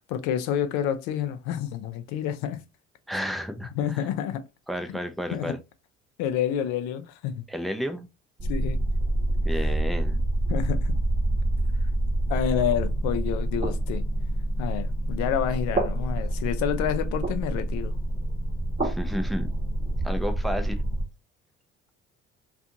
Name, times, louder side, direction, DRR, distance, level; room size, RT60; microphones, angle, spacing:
voice 1, 0.0-2.6 3.7-4.4 4.9-5.0 5.3-5.5 6.2-7.4 8.5-8.8 10.5-11.0 12.3-14.0 14.6-18.0, left 9 dB, 80° left, 0.5 m, -28 dB
voice 2, 3.1-4.0 4.7-5.6 7.5-8.1 9.4-10.2 18.8-19.5 20.0-20.8, equal, ahead, 0.4 m, -32 dB
sound 1, 8.4-21.0, right 1 dB, 25° right, 0.8 m, -27 dB
2.5 x 2.4 x 2.7 m
supercardioid pair, 70°, 29 cm